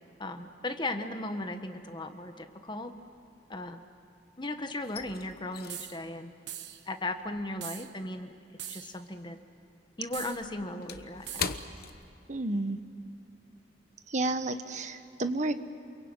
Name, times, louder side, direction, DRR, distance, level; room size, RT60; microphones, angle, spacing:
voice 1, 0.2-2.9 3.5-3.8 4.4-6.3 6.9-8.3 8.6-9.4 10.0-11.6, left 2 dB, 25° left, 7 dB, 1.4 m, -37 dB
sound 1, 1.4-1.9 2.2-4.2 4.5-9.2 9.4-12.7 13.1-13.2 13.7-14.0, left 6 dB, 60° left, 1.0 m, -42 dB
sound 2, 5.7-6.0 6.5-6.8 7.6-7.9 8.6-9.0 10.1-10.4 11.3-11.6, right 11 dB, 75° right, 1.3 m, -41 dB
voice 2, 12.3-12.8 14.1-15.5, right 2 dB, 40° right, 9 dB, 1.2 m, -31 dB
28.0 x 22.5 x 9.0 m, 2.7 s
head